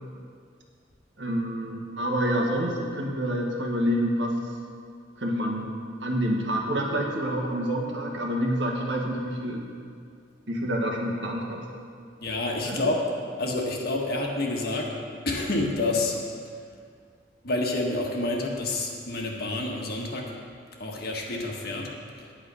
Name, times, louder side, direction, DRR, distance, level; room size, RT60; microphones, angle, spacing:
voice 1, 1.2-4.4 5.2-5.7 6.0-9.6 10.5-11.6 12.6-12.9, equal, 75° right, 0 dB, 1.6 m, -27 dB
voice 2, 12.2-13.0 13.4-14.9 15.2-16.2 17.4-20.3 20.8-21.9, left 2 dB, 55° left, 0 dB, 1.5 m, -28 dB
9.8 x 8.9 x 5.5 m, 2.2 s
head